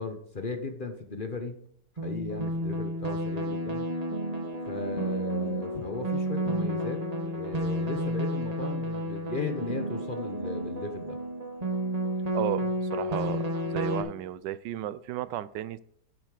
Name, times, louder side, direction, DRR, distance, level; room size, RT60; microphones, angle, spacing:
voice 1, 0.0-1.6 2.0-3.9 4.7-11.2, left 3 dB, 35° left, 6 dB, 1.0 m, -36 dB
sound 1, 2.0-14.0, right 1 dB, 25° right, 1.2 m, -31 dB
voice 2, 12.3-15.8, right 12 dB, 80° right, 16 dB, 1.2 m, -34 dB
10.0 x 7.5 x 4.9 m, 0.67 s
omnidirectional pair, 1.9 m